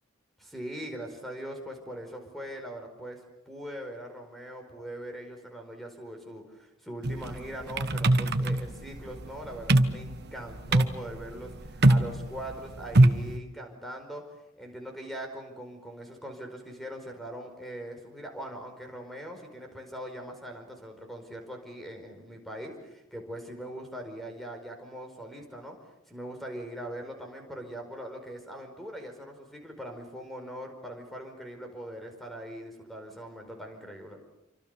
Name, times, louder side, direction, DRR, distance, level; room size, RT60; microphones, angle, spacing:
voice 1, 0.4-3.2 3.4-25.7 26.1-34.2, right 1 dB, ahead, 4 dB, 4.9 m, -41 dB
sound 1, 7.0-13.4, right 1 dB, 50° right, 1.3 m, -23 dB
28.0 x 25.0 x 6.9 m, 0.91 s
head